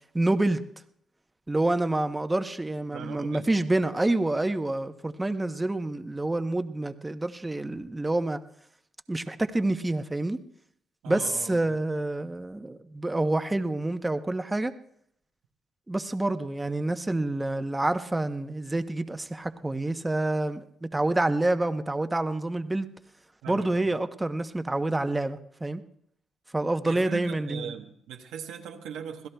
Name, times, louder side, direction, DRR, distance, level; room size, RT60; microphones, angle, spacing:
voice 1, 0.1-0.6 1.5-8.4 9.1-10.4 11.1-14.7 15.9-22.9 23.5-25.8 26.5-27.7, right 2 dB, 15° right, 9 dB, 0.8 m, -27 dB
voice 2, 2.9-3.5 11.0-11.8 23.4-23.9 26.9-29.3, right 8 dB, 90° right, 2 dB, 1.0 m, -40 dB
26.0 x 16.5 x 2.3 m, 0.70 s
cardioid pair, 90°, 0 cm